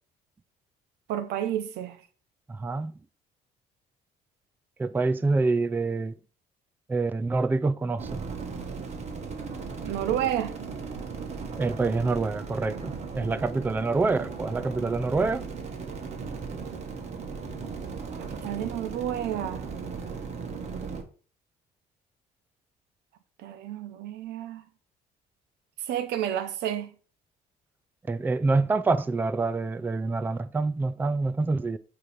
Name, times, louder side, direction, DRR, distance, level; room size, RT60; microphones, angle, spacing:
voice 1, 1.1-2.0 9.8-10.6 13.4-13.5 18.2-19.6 23.4-24.6 25.8-26.9, right 11 dB, 80° right, 0.9 m, -30 dB
voice 2, 2.5-2.9 4.8-6.1 6.9-8.2 11.6-15.5 28.1-31.8, right 3 dB, 10° right, 0.4 m, -26 dB
sound 1, 8.0-21.0, right 5 dB, 40° right, 1.5 m, -37 dB
8.5 x 3.2 x 4.9 m
cardioid pair, 110°, 17 cm